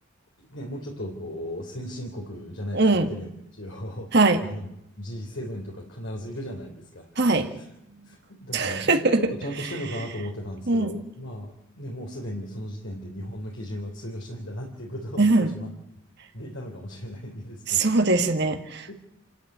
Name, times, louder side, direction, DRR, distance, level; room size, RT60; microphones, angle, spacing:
voice 1, 0.5-4.7 5.0-7.3 7.6-7.7 8.0-15.7 16.3-17.9 18.9-19.0, equal, 60° left, 1 dB, 3.4 m, -36 dB
voice 2, 2.7-3.1 4.1-4.4 7.2-7.5 8.5-9.2 10.7-10.9 15.2-15.5 17.7-18.9, right 3 dB, 50° right, 6 dB, 1.8 m, -21 dB
28.0 x 13.5 x 9.3 m, 0.83 s
head